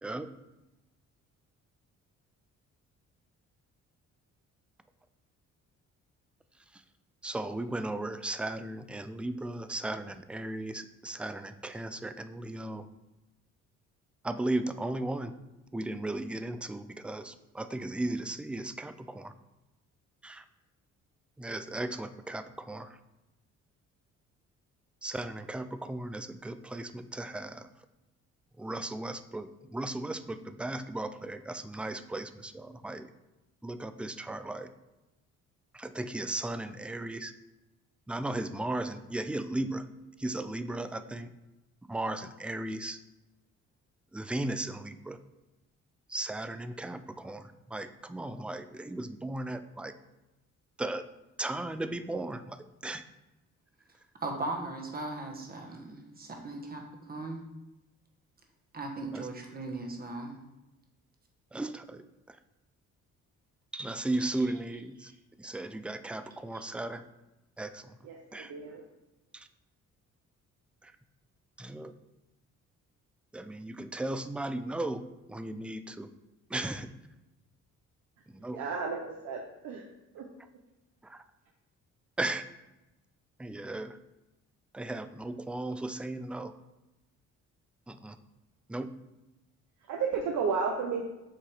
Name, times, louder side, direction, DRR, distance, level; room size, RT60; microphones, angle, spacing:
voice 1, 7.2-12.9 14.2-15.3 15.7-19.3 20.2-20.4 21.4-23.0 25.0-27.7 28.6-33.1 33.6-34.7 35.7-37.3 38.1-39.8 40.2-41.3 41.9-43.0 44.1-45.2 46.1-49.9 50.8-51.0 51.4-53.0 59.1-59.3 61.5-62.4 63.7-65.1 65.4-67.0 67.6-68.0 68.3-68.5 69.3-69.5 70.8-70.9 71.6-71.9 73.3-75.0 75.3-76.1 76.5-76.9 78.3-78.6 81.0-81.2 82.2-82.5 83.4-84.0 84.7-86.5 87.9-88.2 88.7-88.9, right 2 dB, 5° right, 10 dB, 0.3 m, -36 dB
voice 2, 54.2-57.4 58.7-60.4 65.0-65.2, right 2 dB, 30° right, 2 dB, 1.3 m, -38 dB
voice 3, 68.0-68.8 78.5-79.0 79.2-79.8 80.1-80.2 89.9-91.0, right 5 dB, 70° right, 0 dB, 0.9 m, -32 dB
7.7 x 2.8 x 4.9 m, 1.0 s
cardioid pair, 90°, 30 cm